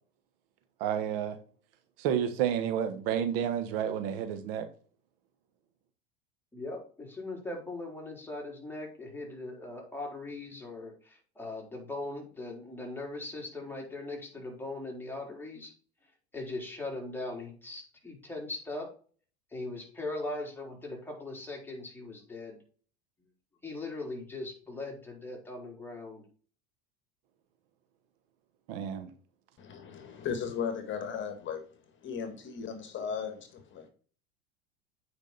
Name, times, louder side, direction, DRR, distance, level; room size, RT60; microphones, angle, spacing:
voice 1, 0.8-1.4 2.0-4.7 28.7-29.1, right 9 dB, 70° right, 1.4 m, -30 dB
voice 2, 6.5-15.7 16.3-18.9 19.5-22.6 23.6-26.2, left 2 dB, 5° left, 3.9 m, -40 dB
voice 3, 29.6-31.6 32.0-33.9, left 7 dB, 40° left, 1.6 m, -36 dB
8.8 x 5.2 x 4.1 m
hypercardioid pair, 95°, 30 cm